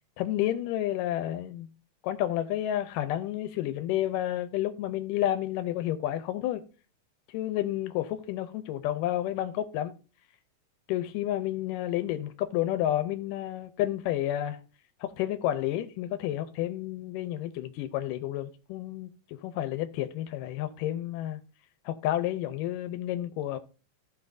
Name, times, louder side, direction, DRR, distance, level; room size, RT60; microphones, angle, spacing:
voice 1, 0.2-1.7 2.0-6.6 7.3-9.9 10.9-14.6 15.0-19.1 19.4-21.4 21.9-23.6, left 13 dB, 90° left, 2.3 m, -30 dB
15.0 x 6.0 x 2.6 m
omnidirectional pair, 3.8 m